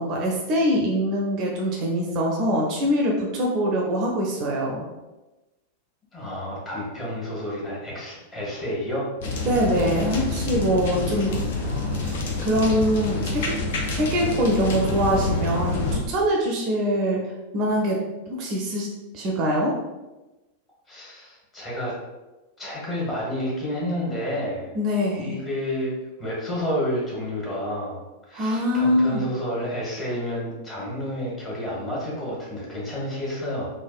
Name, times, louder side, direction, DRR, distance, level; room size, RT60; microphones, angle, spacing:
voice 1, 0.0-4.8 9.5-11.3 12.0-13.6 13.9-17.2 17.5-18.0 18.3-18.9 19.1-19.8 24.7-25.4 28.3-29.2, equal, 40° right, -1 dB, 0.5 m, -23 dB
voice 2, 6.1-9.1 11.2-12.0 20.9-21.9 22.6-24.7 25.2-33.7, equal, 20° left, -5 dB, 1.2 m, -30 dB
sound 1, 9.2-16.0, left 3 dB, 55° left, 0.5 m, -27 dB
3.3 x 2.1 x 2.4 m, 1.1 s
figure-of-eight pair, 90°, 0 cm